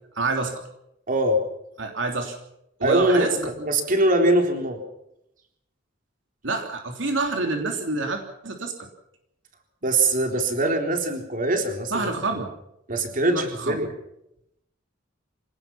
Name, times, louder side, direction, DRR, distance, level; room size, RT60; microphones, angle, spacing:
voice 1, 0.1-0.7 1.8-2.4 2.8-3.5 6.4-8.9 11.9-12.5 13.3-13.8, right 3 dB, 70° right, 3 dB, 3.2 m, -27 dB
voice 2, 1.1-1.4 2.8-4.8 9.8-12.1 12.9-13.9, right 1 dB, 45° right, 4 dB, 3.8 m, -22 dB
26.0 x 18.5 x 5.8 m, 0.80 s
head